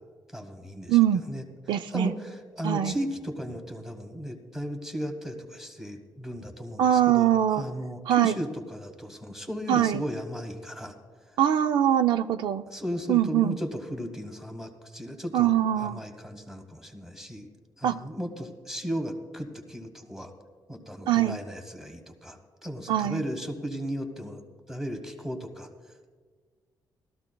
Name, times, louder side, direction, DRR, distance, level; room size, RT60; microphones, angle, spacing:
voice 1, 0.3-1.4 1.9-10.9 12.7-17.5 17.8-20.3 20.7-25.7, equal, 5° right, 4 dB, 1.3 m, -36 dB
voice 2, 0.9-1.2 1.7-2.1 2.6-2.9 6.8-7.6 8.1-8.4 9.7-10.0 11.4-12.6 13.1-13.6 15.3-16.0 17.8-18.0 21.1-21.4 22.9-23.2, right 11 dB, 80° right, 9 dB, 0.4 m, -22 dB
19.0 x 13.5 x 2.3 m, 1.5 s
cardioid pair, 160°, 8 cm